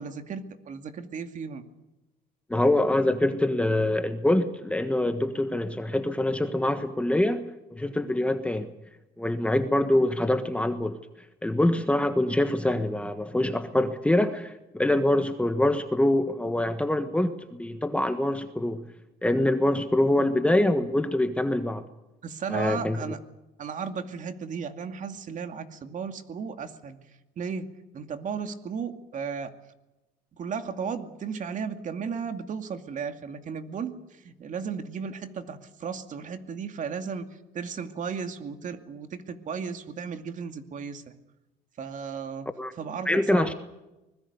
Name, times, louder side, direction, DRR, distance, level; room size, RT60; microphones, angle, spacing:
voice 1, 0.0-1.6 22.2-23.2 23.6-27.0 27.4-27.7 27.9-29.5 30.3-37.3 37.5-41.1 41.8-42.5 42.7-43.5, right 6 dB, 50° right, 8 dB, 2.4 m, -35 dB
voice 2, 2.5-7.4 7.7-8.7 9.2-11.0 11.4-18.8 19.2-21.8 22.5-23.0 42.6-42.7 43.1-43.5, left 1 dB, 5° left, 8 dB, 1.5 m, -24 dB
25.0 x 21.0 x 6.9 m, 0.99 s
cardioid pair, 110°, 17 cm